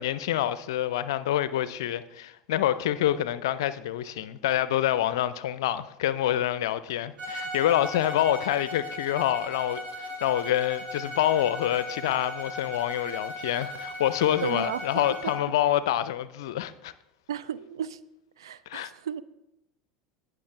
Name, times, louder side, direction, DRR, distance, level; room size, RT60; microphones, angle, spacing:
voice 1, 0.0-16.9 18.7-18.9, left 12 dB, 65° left, 0.5 m, -27 dB
Bowed string instrument, 7.2-15.5, left 1 dB, 45° right, 2.2 m, -37 dB
voice 2, 14.4-14.8 15.2-15.3 17.3-18.0 18.4-19.2, right 9 dB, 75° right, 0.4 m, -34 dB
18.0 x 6.1 x 3.3 m
figure-of-eight pair, 75°, 3 cm